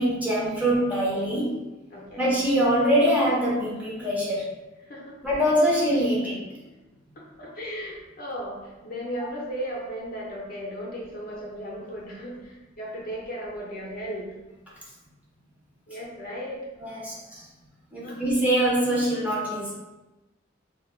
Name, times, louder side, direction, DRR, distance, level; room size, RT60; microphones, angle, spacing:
voice 1, 0.0-1.5 2.2-4.5 5.2-6.4 16.8-17.4 17.9-19.7, equal, 10° right, -7 dB, 0.6 m, -23 dB
voice 2, 1.9-2.3 4.9-5.2 7.2-14.3 15.9-16.6 18.0-18.2, equal, 50° left, -3 dB, 0.6 m, -36 dB
2.1 x 2.1 x 3.1 m, 1.1 s
head